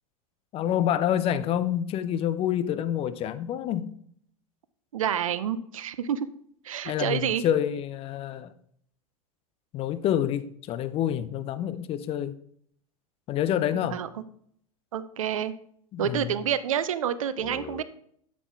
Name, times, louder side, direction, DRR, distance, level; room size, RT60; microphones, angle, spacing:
voice 1, 0.5-3.9 6.9-8.5 9.7-12.4 13.3-14.0 15.9-16.3 17.4-17.8, left 10 dB, 30° left, 13 dB, 0.6 m, -28 dB
voice 2, 4.9-6.3 6.6-7.4 13.9-14.1 14.9-15.5 16.0-17.8, right 9 dB, 65° right, 14 dB, 0.7 m, -28 dB
11.0 x 7.5 x 3.5 m, 0.65 s
figure-of-eight pair, 85°, 18 cm